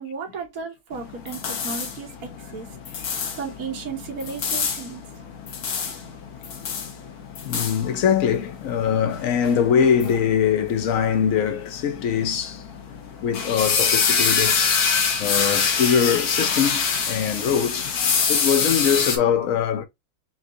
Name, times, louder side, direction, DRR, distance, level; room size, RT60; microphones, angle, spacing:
voice 1, 0.0-5.1, right 5 dB, 70° right, 1.6 m, -35 dB
sound 1, 0.9-19.2, left 6 dB, 90° left, 1.5 m, -26 dB
voice 2, 7.4-12.6 13.2-19.8, left 8 dB, 65° left, 1.2 m, -22 dB
5.8 x 2.6 x 2.7 m
omnidirectional pair, 1.6 m